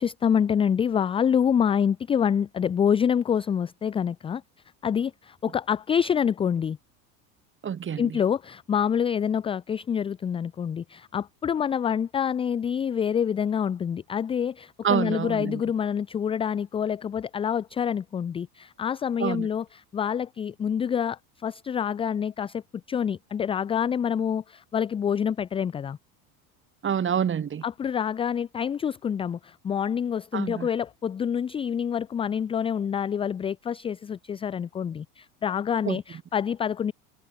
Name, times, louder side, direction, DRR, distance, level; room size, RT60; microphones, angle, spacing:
voice 1, 0.0-4.4 4.8-6.8 8.0-22.6 22.9-26.0 27.6-36.9, left 8 dB, 15° left, 0.3 m, -27 dB
voice 2, 7.6-8.2 14.8-15.6 19.2-19.5 26.8-27.6 30.3-30.7 35.9-36.0, right 8 dB, 25° right, 1.8 m, -27 dB
hypercardioid pair, 90°, 46 cm